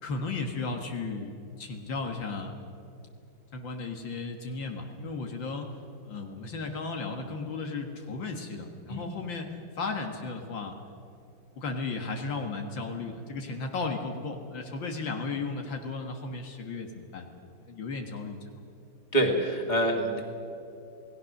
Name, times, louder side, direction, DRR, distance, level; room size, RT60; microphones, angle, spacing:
voice 1, 0.0-2.5 3.5-5.7 6.1-9.5 9.8-10.8 11.6-17.3 17.6-18.7, left 3 dB, 70° left, 3 dB, 2.2 m, -35 dB
voice 2, 19.1-20.2, right 1 dB, 20° left, 2 dB, 2.6 m, -26 dB
28.0 x 18.0 x 6.6 m, 2.7 s
omnidirectional pair, 2.2 m